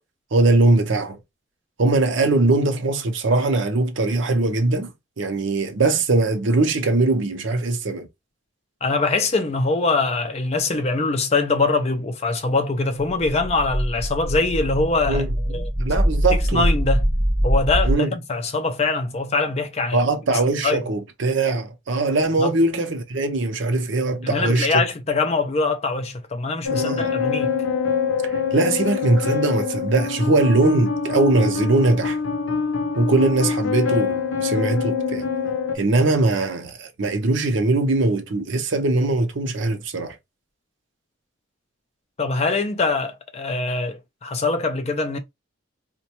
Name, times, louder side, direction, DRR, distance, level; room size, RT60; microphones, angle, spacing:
voice 1, 0.3-1.2 1.8-4.9 5.2-8.1 15.1-16.7 17.8-18.1 19.9-24.8 26.7-27.2 28.2-32.2 33.0-35.2 35.7-40.2, right 2 dB, 65° right, 0.6 m, -21 dB
voice 2, 8.8-15.2 15.5-15.7 16.5-17.1 17.4-20.8 22.4-22.5 24.2-27.6 42.2-45.2, left 3 dB, 30° left, 0.4 m, -23 dB
sound 1, 13.2-17.9, equal, 5° right, 0.7 m, -23 dB
sound 2, 26.6-35.8, left 5 dB, 75° left, 0.6 m, -25 dB
4.0 x 2.2 x 2.8 m
head